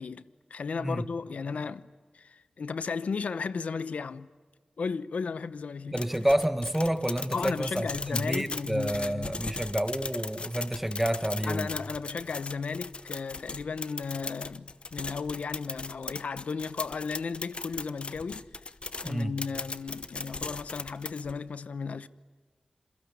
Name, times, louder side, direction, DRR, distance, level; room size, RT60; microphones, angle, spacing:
voice 1, 0.0-1.9 2.1-4.3 4.8-6.0 7.3-9.3 11.5-18.5 19.0-22.1, left 5 dB, 90° left, 0.9 m, -35 dB
voice 2, 5.9-11.7 19.0-19.4, right 1 dB, 10° right, 1.7 m, -29 dB
sound 1, 6.0-21.4, left 3 dB, 55° left, 1.0 m, -39 dB
27.5 x 22.5 x 9.5 m
wide cardioid pair, 75°, 2 cm